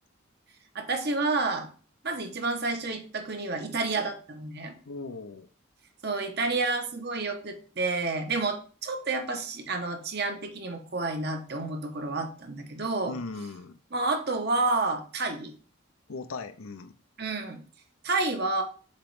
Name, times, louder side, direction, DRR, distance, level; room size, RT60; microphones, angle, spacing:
voice 1, 0.7-1.7 2.0-4.7 6.0-13.1 13.9-15.5 17.2-17.6 18.0-18.6, right 3 dB, 50° right, 1.1 m, -29 dB
voice 2, 4.9-5.5 13.1-13.8 16.1-16.9, left 3 dB, 85° left, 0.7 m, -38 dB
7.4 x 3.1 x 4.7 m
head